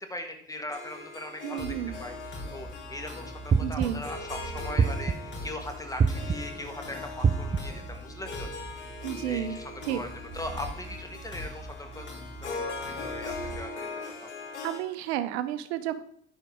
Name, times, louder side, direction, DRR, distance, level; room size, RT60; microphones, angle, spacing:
voice 1, 0.1-8.7 9.2-10.1 10.3-12.1 12.4-13.9 14.2-14.3, left 1 dB, 10° left, 5 dB, 1.6 m, -40 dB
Harp, 0.7-14.8, left 3 dB, 85° left, 1.2 m, -41 dB
voice 2, 1.4-2.0 3.6-4.0 9.0-9.6 9.9-10.0 14.6-16.0, right 11 dB, 65° right, 13 dB, 0.7 m, -31 dB
sound 1, 1.6-13.5, equal, 30° left, 2.1 m, -42 dB
sound 2, 3.5-4.1 4.8-5.4 6.0-6.6 7.2-7.9, right 5 dB, 20° right, 0.4 m, -26 dB
9.9 x 4.1 x 4.8 m, 0.66 s
figure-of-eight pair, 55°, 34 cm